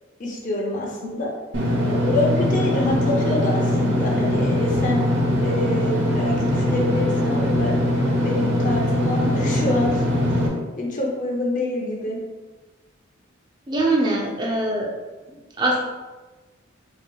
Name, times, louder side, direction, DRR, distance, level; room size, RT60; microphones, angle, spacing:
voice 1, 0.2-1.3 1.8-5.1 5.4-7.8 8.2-10.1 10.8-12.2, left 1 dB, 40° left, -2 dB, 0.6 m, -26 dB
Engine / Mechanisms, 1.5-10.5, left 1 dB, 60° right, 0.8 m, -21 dB
voice 2, 13.7-14.9 15.6-15.8, right 2 dB, 20° right, -1 dB, 0.5 m, -22 dB
4.6 x 2.9 x 2.3 m, 1.2 s
head